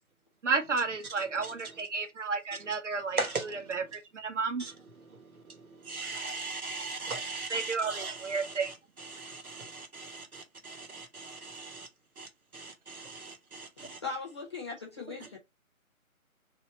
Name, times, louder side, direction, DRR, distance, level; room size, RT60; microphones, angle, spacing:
voice 1, 0.4-3.2 3.7-4.6 7.5-8.7, right 4 dB, 55° right, 1.0 m, -32 dB
voice 2, 3.2-3.8 4.6-4.7 5.5-11.9 12.2-12.3 12.5-14.0, right 3 dB, 80° right, 1.3 m, -39 dB
voice 3, 14.0-15.4, left 4 dB, 20° left, 0.8 m, -39 dB
3.2 x 2.8 x 4.2 m
figure-of-eight pair, 150°, 43 cm